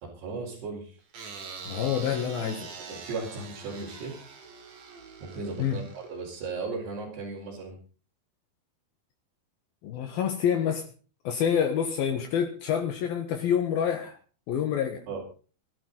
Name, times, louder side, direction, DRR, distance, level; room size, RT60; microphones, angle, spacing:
voice 1, 0.0-1.0 2.9-4.2 5.2-7.8 15.1-15.2, right 4 dB, 80° right, -5 dB, 6.3 m, -36 dB
sound 1, 1.1-6.4, right 5 dB, 55° right, 3.7 m, -44 dB
voice 2, 1.6-2.7 5.6-5.8 9.8-10.9 11.2-14.2 14.5-15.0, left 8 dB, 70° left, 4 dB, 3.2 m, -27 dB
22.5 x 12.0 x 4.0 m, 0.38 s
omnidirectional pair, 4.6 m